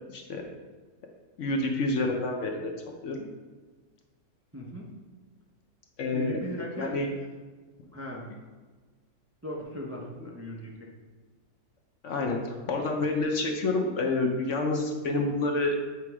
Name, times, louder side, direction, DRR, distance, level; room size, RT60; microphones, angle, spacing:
voice 1, 0.1-0.4 1.4-2.7 3.0-3.2 6.0-6.4 6.8-7.1 10.2-10.3 12.0-15.8, left 2 dB, 60° left, 2 dB, 0.9 m, -28 dB
voice 2, 4.5-4.9 6.1-7.0 7.9-8.3 9.4-10.9, equal, 20° right, -3 dB, 0.4 m, -37 dB
6.9 x 3.0 x 4.7 m, 1.4 s
omnidirectional pair, 1.6 m